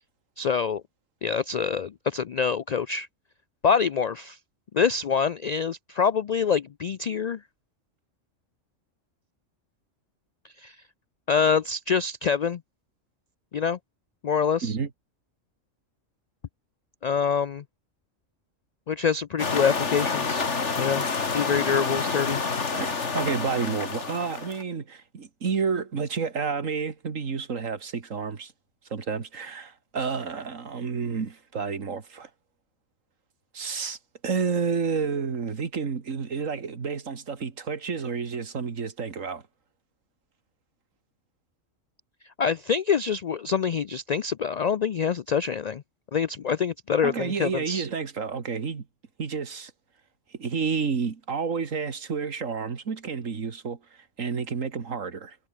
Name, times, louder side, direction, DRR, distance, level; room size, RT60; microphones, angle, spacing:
voice 1, 0.4-0.8 1.2-3.1 3.6-4.4 4.7-7.4 10.6-10.8 11.3-12.6 13.5-13.8 14.2-14.8 17.0-17.6 18.9-20.4 20.8-21.0 21.3-22.4 42.4-45.8 46.1-47.9, left 6 dB, 80° left, 0.3 m, -25 dB
sound 1, 19.4-24.6, left 4 dB, 65° left, 2.4 m, -28 dB
voice 2, 22.7-28.5 28.9-32.3 33.5-34.0 34.2-39.4 47.0-48.9 49.2-49.7 50.4-53.8 54.2-55.4, right 5 dB, 90° right, 2.2 m, -30 dB
omnidirectional pair, 1.3 m